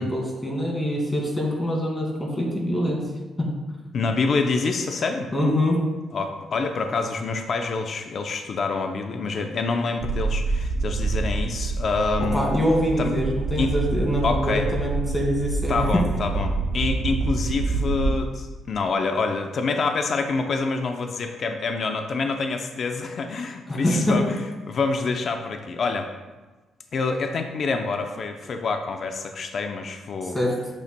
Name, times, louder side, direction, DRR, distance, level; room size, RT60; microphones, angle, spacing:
voice 1, 0.0-3.0 3.4-3.5 5.3-5.8 12.3-15.8 23.7-24.1 30.3-30.5, equal, 20° left, -2 dB, 2.2 m, -24 dB
voice 2, 3.9-5.3 6.1-12.4 13.0-13.1 13.5-13.7 14.2-14.7 15.7-26.1 26.9-30.4, left 4 dB, 50° left, 5 dB, 0.6 m, -26 dB
sound 1, 10.0-18.1, right 3 dB, 85° right, 0.8 m, -27 dB
8.3 x 6.5 x 2.2 m, 1.3 s
cardioid pair, 90°, 0 cm